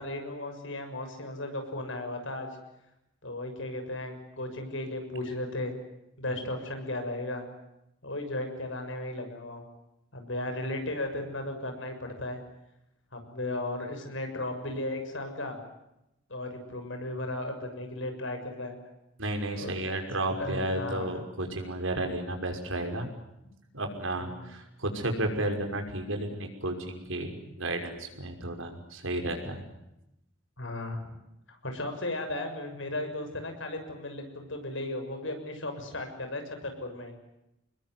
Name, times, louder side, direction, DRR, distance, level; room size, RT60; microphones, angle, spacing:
voice 1, 0.0-2.5 3.2-5.7 6.2-7.5 8.0-9.6 10.1-12.4 13.1-15.6 16.3-18.8 19.5-19.7 20.4-21.2 24.2-24.5 30.6-31.1 31.5-37.2, left 1 dB, 70° left, 5 dB, 6.8 m, -35 dB
voice 2, 19.2-23.1 23.7-29.6, right 1 dB, 80° right, 4 dB, 5.8 m, -32 dB
27.5 x 21.0 x 9.6 m, 0.87 s
head